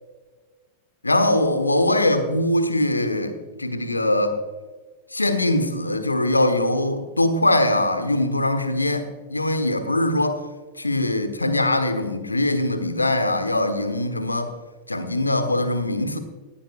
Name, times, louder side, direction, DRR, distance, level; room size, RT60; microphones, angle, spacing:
voice 1, 1.0-4.4 5.1-10.4 10.8-14.5 14.9-16.2, left 1 dB, 80° left, 1.3 m, -22 dB
18.5 x 14.0 x 2.4 m
figure-of-eight pair, 90°, 0 cm